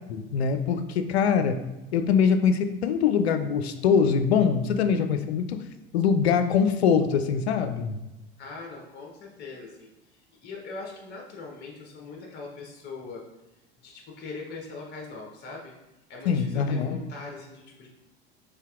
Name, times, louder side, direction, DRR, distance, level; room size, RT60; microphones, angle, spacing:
voice 1, 0.1-1.6 1.9-5.6 5.9-8.0 16.3-17.0, left 6 dB, 75° left, 9 dB, 0.5 m, -23 dB
voice 2, 8.4-13.2 13.8-15.7 16.1-17.9, left 3 dB, 30° left, -2 dB, 0.9 m, -41 dB
5.6 x 3.2 x 2.4 m, 0.98 s
figure-of-eight pair, 75°, 32 cm